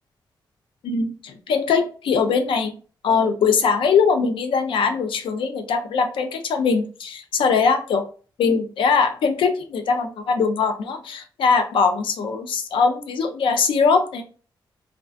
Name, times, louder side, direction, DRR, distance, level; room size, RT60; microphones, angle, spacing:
voice 1, 0.8-2.7 3.0-8.0 8.4-14.2, left 5 dB, 90° left, 7 dB, 0.4 m, -21 dB
2.4 x 2.2 x 2.4 m, 0.38 s
wide cardioid pair, 110°, 8 cm